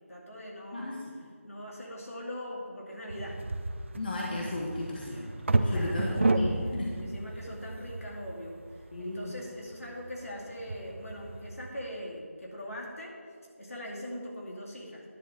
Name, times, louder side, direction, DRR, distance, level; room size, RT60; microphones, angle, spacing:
voice 1, 0.1-0.9 1.4-3.4 5.6-6.3 7.0-13.1 13.6-15.0, left 1 dB, 75° left, -2 dB, 2.4 m, -41 dB
voice 2, 0.7-1.2 4.0-5.3 5.7-6.9 8.9-9.3, left 2 dB, 40° left, -3 dB, 1.2 m, -35 dB
sound 1, 3.1-11.7, right 2 dB, 60° right, 0.6 m, -32 dB
10.0 x 4.0 x 7.5 m, 2.1 s
figure-of-eight pair, 170°, 8 cm